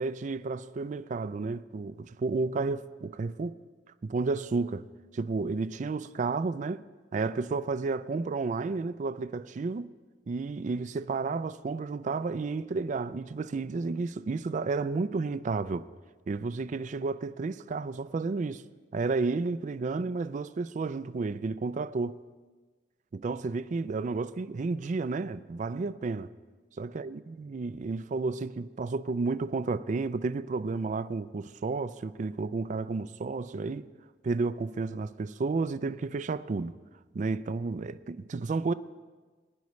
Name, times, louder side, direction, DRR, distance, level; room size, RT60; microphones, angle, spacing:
voice 1, 0.0-3.6 4.0-4.9 5.1-6.9 7.1-9.9 10.3-15.9 16.3-18.6 18.9-22.2 23.1-26.3 26.8-33.9 34.2-36.8 37.1-38.7, right 3 dB, 45° right, 0.4 m, -32 dB
21.0 x 10.5 x 3.2 m
head